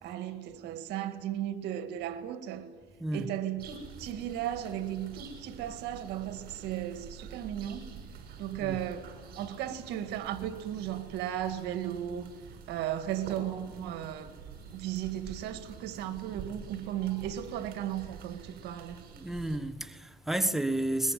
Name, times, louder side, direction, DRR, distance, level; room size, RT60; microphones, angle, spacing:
voice 1, 0.0-2.7 3.1-8.0 8.4-12.3 12.7-14.4 14.7-19.0, right 11 dB, 85° right, 1.9 m, -35 dB
sound 1, 3.6-19.6, right 6 dB, 65° right, 6.5 m, -48 dB
voice 2, 19.2-21.1, right 1 dB, ahead, 1.3 m, -31 dB
22.5 x 21.5 x 9.1 m
cardioid pair, 110°, 17 cm